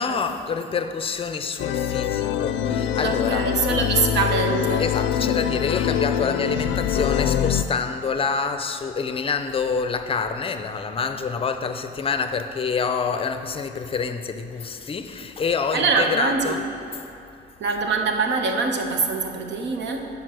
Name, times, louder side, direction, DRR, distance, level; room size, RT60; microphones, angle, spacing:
voice 1, 0.0-3.5 4.8-16.6, left 5 dB, 30° left, 0.5 m, -27 dB
sound 1, 1.6-7.6, left 9 dB, 90° left, 0.4 m, -24 dB
voice 2, 3.0-5.0 15.7-16.7 17.6-20.1, right 4 dB, 75° right, 0.9 m, -24 dB
9.2 x 5.4 x 6.2 m
cardioid pair, 130°, 18 cm